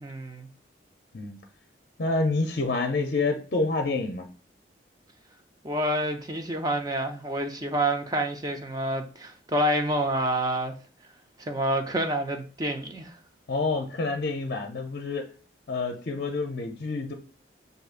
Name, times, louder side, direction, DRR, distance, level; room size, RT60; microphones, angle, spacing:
voice 1, 0.0-0.5 5.6-10.8 11.4-13.1, right 1 dB, 20° right, 0.5 m, -28 dB
voice 2, 2.0-4.3 13.5-15.3 15.7-17.1, left 3 dB, 50° left, 0.5 m, -28 dB
7.7 x 2.7 x 2.4 m
head